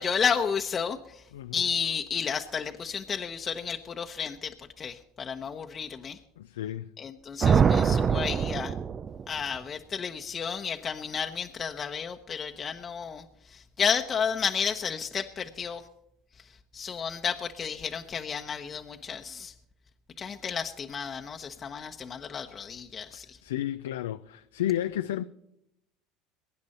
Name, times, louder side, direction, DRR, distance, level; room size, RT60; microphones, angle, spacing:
voice 1, 0.0-1.2 1.5-6.2 7.0-8.7 9.3-15.8 16.4-16.5 16.7-19.5 20.2-23.4, left 6 dB, 35° left, 1.0 m, -32 dB
voice 2, 1.3-1.6 6.4-6.9 21.6-21.7 23.1-25.2, left 12 dB, 90° left, 0.5 m, -32 dB
sound 1, 7.4-9.4, right 6 dB, 35° right, 0.6 m, -23 dB
23.0 x 9.8 x 4.3 m
hypercardioid pair, 90°, 0 cm